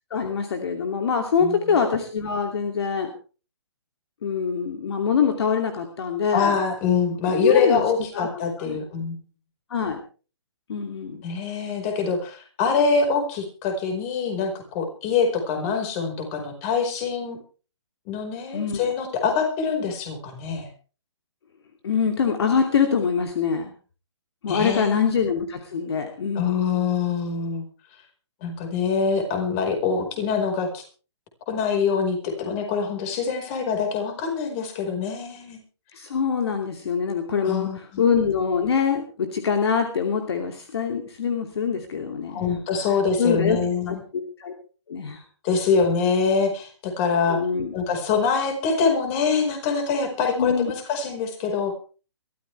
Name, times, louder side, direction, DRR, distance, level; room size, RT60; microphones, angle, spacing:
voice 1, 0.1-3.1 4.2-6.5 7.4-7.9 8.1-8.3 8.6-8.8 9.7-10.0 10.7-11.2 18.5-18.9 21.8-23.7 24.4-26.6 35.9-37.7 38.0-42.5 43.2-43.6 43.9-44.5 44.9-45.2 47.3-47.7 50.4-50.7, left 6 dB, 60° left, 5 dB, 2.8 m, -24 dB
voice 2, 1.4-1.8 6.3-9.2 11.2-17.4 18.1-20.7 24.5-25.0 26.3-27.6 28.4-30.8 31.5-35.6 37.4-38.0 42.3-44.0 45.4-47.4 47.7-51.8, left 5 dB, 30° left, 5 dB, 5.0 m, -24 dB
22.5 x 14.0 x 3.4 m, 0.36 s
hypercardioid pair, 150°, 15 cm